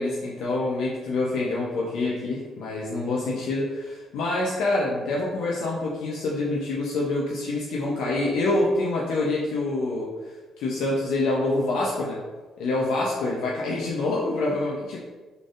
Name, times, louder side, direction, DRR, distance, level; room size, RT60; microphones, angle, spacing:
voice 1, 0.0-10.1 10.6-12.2 12.6-15.0, left 2 dB, 85° left, -4 dB, 0.6 m, -26 dB
3.9 x 3.3 x 2.5 m, 1.3 s
cardioid pair, 100°, 0 cm